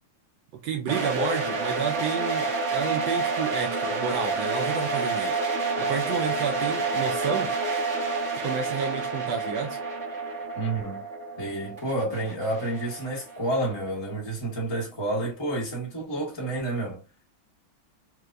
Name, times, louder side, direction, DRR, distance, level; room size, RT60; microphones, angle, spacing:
voice 1, 0.6-5.3 5.8-7.5 8.4-9.8, right 6 dB, 75° right, 1.2 m, -30 dB
sound 1, 0.9-13.7, right 3 dB, 40° right, 1.1 m, -29 dB
voice 2, 10.6-11.0 11.4-17.0, right 1 dB, 25° left, 0.5 m, -29 dB
4.5 x 2.1 x 2.4 m
omnidirectional pair, 2.3 m